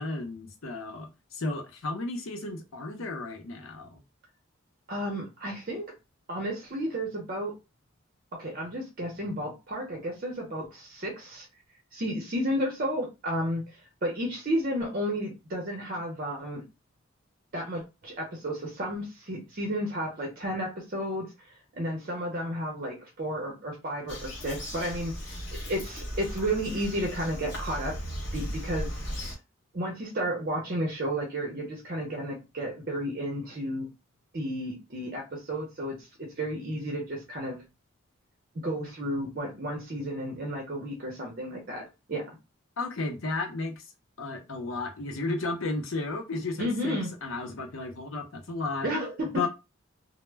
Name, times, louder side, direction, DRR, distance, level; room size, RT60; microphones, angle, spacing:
voice 1, 0.0-4.0 42.8-43.9 44.2-48.9 49.3-49.5, left 3 dB, 80° left, 0.6 m, -33 dB
voice 2, 4.9-5.9 6.3-7.6 8.3-11.5 11.9-16.6 17.5-28.0 28.3-29.0 29.7-33.9 34.3-37.6 38.5-42.4 46.6-47.1 48.8-49.4, equal, 45° right, 0.6 m, -32 dB
Bird vocalization bird call bird song, 24.1-29.3, equal, 60° left, 1.1 m, -36 dB
2.1 x 2.0 x 3.2 m
head